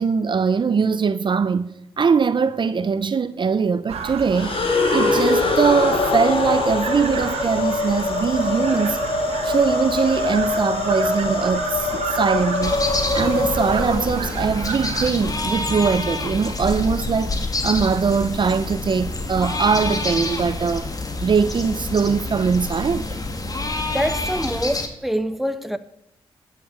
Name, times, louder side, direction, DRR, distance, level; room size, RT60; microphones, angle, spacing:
voice 1, 0.0-1.7 2.0-4.5 4.9-9.0 9.4-12.7 13.1-17.3 17.6-20.9 21.2-23.1, right 5 dB, 50° right, 0.6 m, -21 dB
sound 1, 3.9-15.1, right 6 dB, 85° right, 1.3 m, -31 dB
sound 2, 4.3-14.5, left 3 dB, 60° left, 1.9 m, -23 dB
sound 3, 12.6-24.9, left 2 dB, 35° left, 2.0 m, -27 dB
voice 2, 23.9-25.8, equal, ahead, 1.1 m, -25 dB
11.5 x 7.2 x 7.9 m
supercardioid pair, 45°, 10 cm